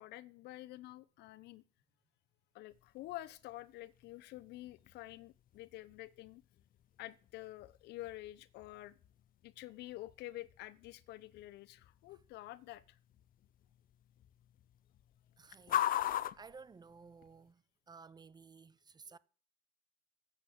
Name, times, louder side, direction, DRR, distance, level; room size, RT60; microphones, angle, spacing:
voice 1, 0.0-1.6 2.5-6.4 7.0-9.0 9.4-13.0 19.1-19.2, left 16 dB, 85° left, 1.0 m, -49 dB
sound 1, 2.7-17.5, left 12 dB, 55° left, 0.7 m, -44 dB
voice 2, 15.4-16.1 16.4-19.2, right 5 dB, 25° right, 0.7 m, -56 dB
14.0 x 8.4 x 7.9 m
cardioid pair, 110°, 17 cm